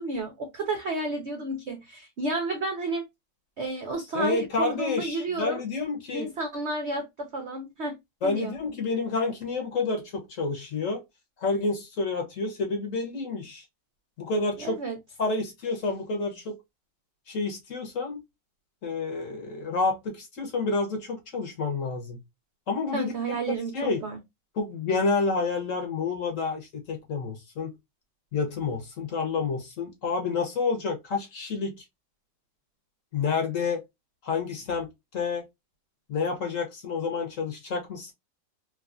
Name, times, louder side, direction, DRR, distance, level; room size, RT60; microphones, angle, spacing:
voice 1, 0.0-3.0 3.6-5.6 6.1-7.9 8.2-8.5 14.6-14.9 22.9-24.2, right 2 dB, 70° right, 0.6 m, -31 dB
voice 2, 4.1-6.3 8.2-11.0 11.4-13.6 14.2-14.8 15.2-16.6 17.3-18.2 18.8-22.2 22.7-23.1 23.7-24.0 24.5-27.7 28.3-31.8 33.1-33.8 34.2-35.4 36.1-38.1, left 4 dB, 55° left, 1.1 m, -29 dB
3.2 x 2.3 x 2.4 m
omnidirectional pair, 2.0 m